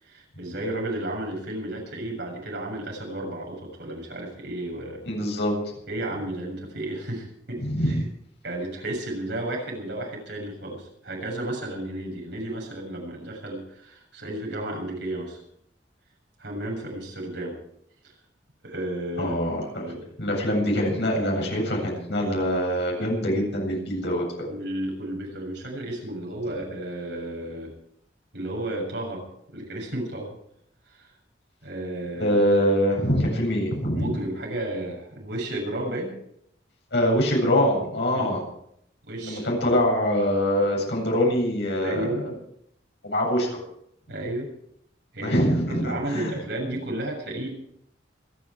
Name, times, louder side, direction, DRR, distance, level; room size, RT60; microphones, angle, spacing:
voice 1, 0.0-5.0 5.9-8.0 8.4-15.4 16.4-17.6 18.6-20.0 24.5-27.7 28.3-29.2 29.5-30.3 30.9-31.1 31.6-32.4 33.9-36.1 38.1-38.3 39.1-39.5 41.8-42.2 44.1-44.5 45.1-47.5, right 1 dB, 70° right, 0 dB, 7.1 m, -33 dB
voice 2, 5.0-5.5 7.6-8.1 19.2-19.9 20.2-24.5 32.2-34.1 36.9-38.5 39.2-42.1 43.0-43.6 45.2-46.3, equal, 70° left, -1 dB, 7.9 m, -24 dB
27.0 x 11.0 x 4.8 m, 0.72 s
head